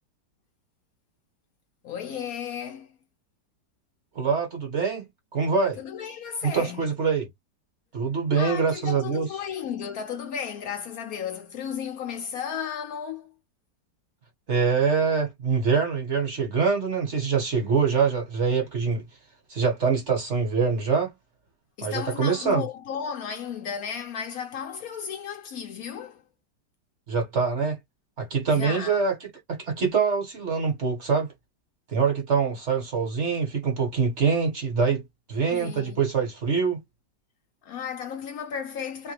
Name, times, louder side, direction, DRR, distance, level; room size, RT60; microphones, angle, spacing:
voice 1, 1.8-2.9 5.8-6.9 8.4-13.3 21.8-26.2 28.5-29.0 35.5-36.1 37.6-39.1, left 7 dB, 65° left, 1.0 m, -34 dB
voice 2, 4.1-5.0 5.3-5.8 6.4-7.3 7.9-9.3 14.5-19.0 19.5-21.1 21.8-22.6 27.1-27.8 28.2-31.3 31.9-35.0 35.3-36.8, right 5 dB, 45° right, 1.3 m, -24 dB
3.3 x 2.9 x 3.2 m
omnidirectional pair, 1.8 m